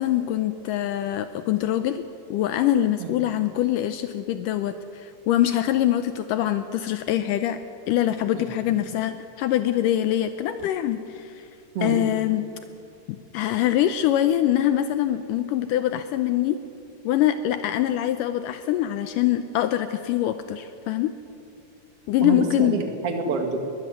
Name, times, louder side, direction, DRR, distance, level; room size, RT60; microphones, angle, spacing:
voice 1, 0.0-7.6 7.9-11.5 11.8-12.4 13.1-16.6 17.1-21.1 22.1-22.8, left 12 dB, 75° left, 10 dB, 2.2 m, -24 dB
voice 2, 22.2-23.6, right 3 dB, 45° right, 4 dB, 2.8 m, -27 dB
21.5 x 14.5 x 9.4 m, 2.6 s
omnidirectional pair, 4.0 m